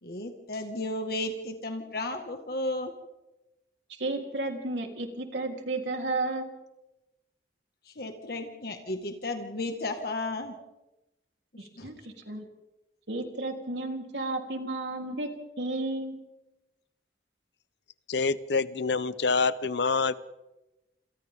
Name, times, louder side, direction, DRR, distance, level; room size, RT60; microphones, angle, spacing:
voice 1, 0.0-2.9 7.9-10.5 11.8-11.9, left 2 dB, 60° left, 5 dB, 1.8 m, -34 dB
voice 2, 3.9-6.5 11.8-12.4 13.1-15.3 15.6-16.1, right 2 dB, 85° right, 2 dB, 3.7 m, -32 dB
voice 3, 18.1-20.1, left 4 dB, 75° left, 16 dB, 0.9 m, -26 dB
28.5 x 27.0 x 3.7 m, 1.0 s
head